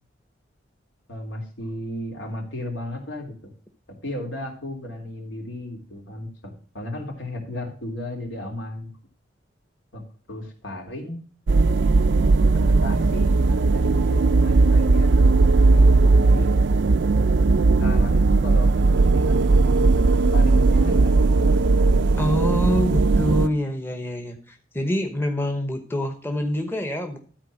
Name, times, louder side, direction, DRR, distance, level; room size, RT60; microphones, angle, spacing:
voice 1, 1.1-3.3 4.0-6.3 6.7-8.9 9.9-10.0 10.3-11.2 12.5-16.5 17.8-21.3 21.9-22.7, left 1 dB, 85° left, 0 dB, 3.2 m, -34 dB
sound 1, 11.5-23.5, right 3 dB, 70° right, 0.5 m, -18 dB
voice 2, 22.2-27.2, left 1 dB, 10° left, 5 dB, 0.9 m, -26 dB
12.5 x 4.5 x 6.3 m, 0.41 s
head